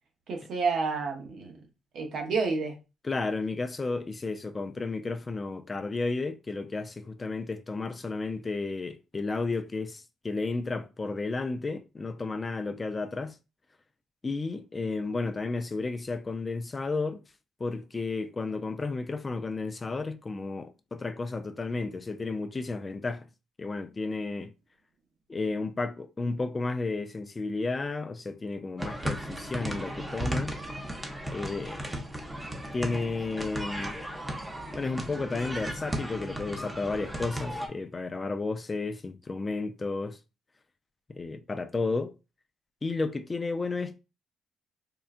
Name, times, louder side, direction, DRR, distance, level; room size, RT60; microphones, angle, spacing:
voice 1, 0.3-1.6 1.9-2.7, right 4 dB, 65° right, 0.9 m, -29 dB
voice 2, 3.0-13.4 14.2-17.2 17.6-23.3 23.6-24.5 25.3-30.6 31.3-31.8 32.7-34.0 34.7-40.2 41.1-42.1 42.8-44.0, left 3 dB, 25° left, 0.3 m, -32 dB
sound 1, 28.8-37.7, right 1 dB, 10° right, 0.8 m, -35 dB
3.7 x 2.2 x 2.4 m
cardioid pair, 90°, 0 cm